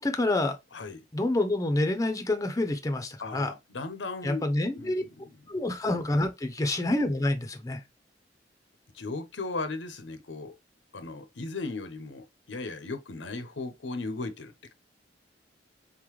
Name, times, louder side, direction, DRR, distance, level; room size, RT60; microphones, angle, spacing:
voice 1, 0.0-0.6 1.1-3.5 4.2-5.0 5.5-7.8, left 2 dB, 20° left, 0.6 m, -27 dB
voice 2, 0.7-1.0 3.2-4.5 4.8-5.1 6.6-6.8 8.9-10.5 10.9-14.7, left 3 dB, 85° left, 0.8 m, -37 dB
4.0 x 3.8 x 3.1 m
head